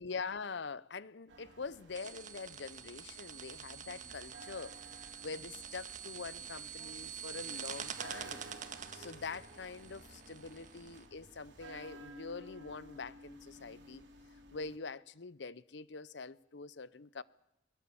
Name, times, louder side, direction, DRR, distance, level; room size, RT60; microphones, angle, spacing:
voice 1, 0.0-4.8 5.2-14.0 14.5-17.2, left 4 dB, 65° left, 0.7 m, -44 dB
sound 1, 1.3-14.8, right 2 dB, 75° right, 3.6 m, -54 dB
sound 2, 1.9-11.1, right 8 dB, 45° right, 1.7 m, -47 dB
22.0 x 21.5 x 7.1 m
head